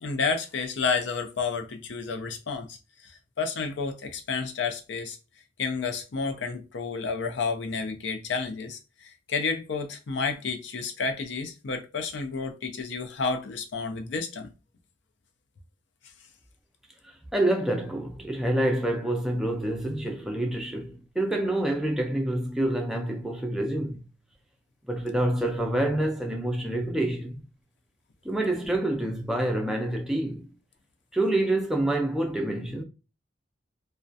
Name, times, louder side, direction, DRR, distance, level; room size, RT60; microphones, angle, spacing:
voice 1, 0.0-2.8 3.4-5.2 5.6-14.5, left 4 dB, 70° left, 0.5 m, -30 dB
voice 2, 17.3-24.0 24.9-27.4 28.2-30.5 31.1-32.8, right 1 dB, ahead, 0.4 m, -27 dB
2.3 x 2.1 x 2.6 m
head